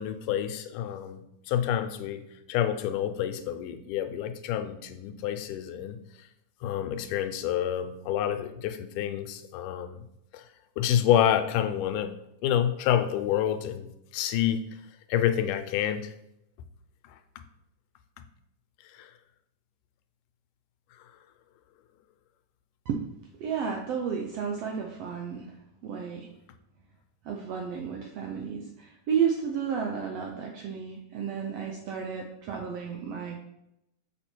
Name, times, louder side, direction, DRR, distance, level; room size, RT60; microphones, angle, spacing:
voice 1, 0.0-2.2 2.5-6.0 6.6-10.0 10.3-10.5 10.8-12.1 12.4-14.7 15.1-16.1 18.9-19.1, left 10 dB, 90° left, 9 dB, 2.2 m, -28 dB
voice 2, 23.4-25.6 25.8-26.3 27.2-33.4, right 7 dB, 75° right, 1 dB, 1.5 m, -32 dB
6.7 x 5.6 x 4.5 m, 0.84 s
omnidirectional pair, 3.6 m